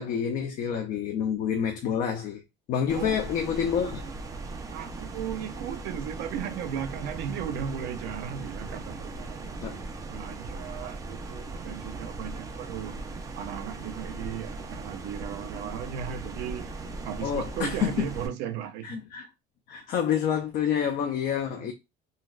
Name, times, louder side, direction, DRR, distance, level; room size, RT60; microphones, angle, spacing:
voice 1, 0.0-2.4 2.7-4.0 9.6-9.9 17.2-18.0 18.8-19.2 19.7-21.7, left 8 dB, 50° left, 0.4 m, -28 dB
sound 1, 2.9-18.3, right 3 dB, 20° right, 0.4 m, -38 dB
voice 2, 4.7-13.0 13.4-19.0 21.6-21.7, right 9 dB, 75° right, 0.5 m, -36 dB
3.9 x 2.1 x 2.4 m
cardioid pair, 170°, 18 cm